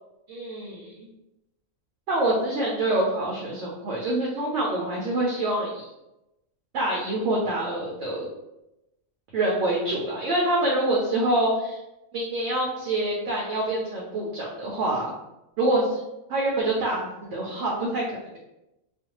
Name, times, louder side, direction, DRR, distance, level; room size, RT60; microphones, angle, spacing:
voice 1, 0.3-1.1 2.1-5.9 6.7-8.3 9.3-11.8 12.1-15.1 15.6-15.9 16.3-18.4, right 1 dB, 65° right, -3 dB, 0.8 m, -26 dB
2.5 x 2.2 x 2.9 m, 0.93 s
omnidirectional pair, 1.4 m